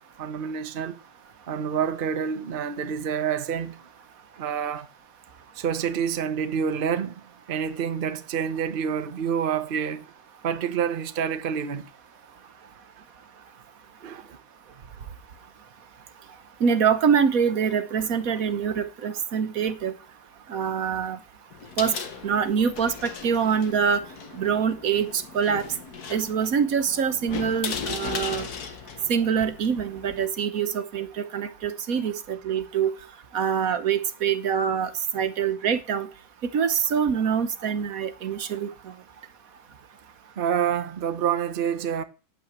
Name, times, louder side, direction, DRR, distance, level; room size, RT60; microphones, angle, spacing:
voice 1, 0.2-1.0 1.5-3.8 4.4-4.9 5.5-7.2 7.5-10.0 10.4-11.9 14.0-14.4 40.4-42.0, right 7 dB, 40° right, 1.0 m, -27 dB
voice 2, 16.6-19.9 20.5-21.2 21.8-21.9 22.2-24.0 24.3-25.6 26.1-28.5 29.1-32.9 33.3-36.1 36.5-38.7, right 7 dB, 65° right, 1.4 m, -25 dB
sound 1, 21.5-30.3, left 6 dB, 80° left, 2.0 m, -37 dB
10.0 x 8.8 x 7.9 m
omnidirectional pair, 1.6 m